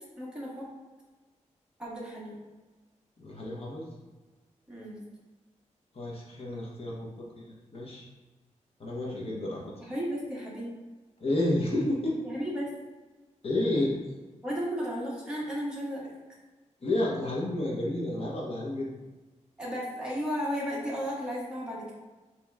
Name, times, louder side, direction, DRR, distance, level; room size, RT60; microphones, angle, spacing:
voice 1, 0.2-0.7 1.8-2.4 4.7-5.1 9.9-10.8 12.2-12.7 14.4-16.1 19.6-21.9, equal, 5° right, -6 dB, 1.5 m, -34 dB
voice 2, 3.2-3.9 5.9-8.1 8.8-9.7 11.2-12.2 13.4-13.9 16.8-18.9, left 1 dB, 50° left, -3 dB, 0.9 m, -30 dB
7.0 x 3.0 x 2.4 m, 1.2 s
wide cardioid pair, 115°, 13 cm